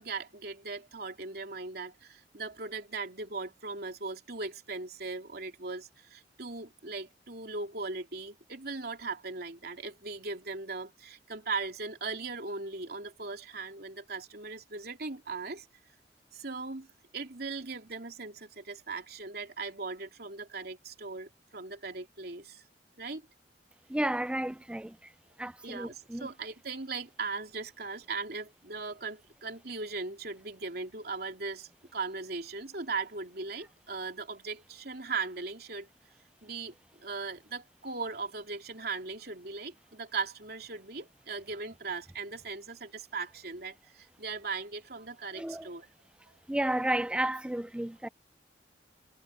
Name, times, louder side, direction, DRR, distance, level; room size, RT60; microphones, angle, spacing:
voice 1, 0.0-15.7 16.3-16.9 17.1-22.6 23.0-23.2 25.6-35.9 36.4-36.7 37.0-45.9, right 4 dB, 60° right, 3.2 m, -38 dB
voice 2, 23.9-25.0 25.4-26.3 45.4-45.7 46.5-48.1, right 1 dB, 5° right, 0.3 m, -32 dB
head